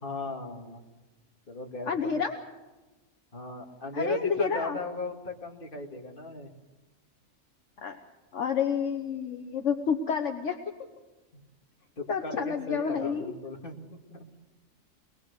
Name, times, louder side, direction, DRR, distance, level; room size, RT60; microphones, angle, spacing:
voice 1, 0.0-0.8 1.5-2.2 3.3-6.5 11.3-11.4 12.0-14.3, left 2 dB, 40° left, 2 dB, 2.6 m, -37 dB
voice 2, 1.9-2.4 3.9-4.8 7.8-8.0 8.3-10.6 12.1-13.3, left 6 dB, 65° left, 5 dB, 1.5 m, -29 dB
24.0 x 20.5 x 6.7 m, 1.2 s
omnidirectional pair, 1.3 m